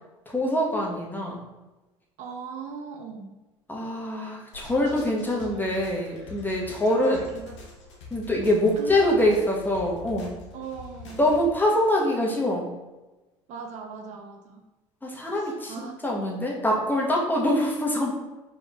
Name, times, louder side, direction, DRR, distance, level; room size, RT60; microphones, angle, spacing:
voice 1, 0.3-1.4 3.7-7.2 8.1-10.3 11.2-12.7 15.0-18.1, left 1 dB, 10° left, -2 dB, 1.2 m, -24 dB
voice 2, 2.2-3.4 6.9-7.6 8.8-9.3 10.5-11.3 13.5-14.6 15.3-15.9, right 4 dB, 50° right, 3 dB, 0.6 m, -38 dB
sound 1, 4.5-11.5, left 3 dB, 80° left, 1.0 m, -45 dB
5.0 x 3.4 x 2.4 m, 1.1 s
hypercardioid pair, 65°, 15 cm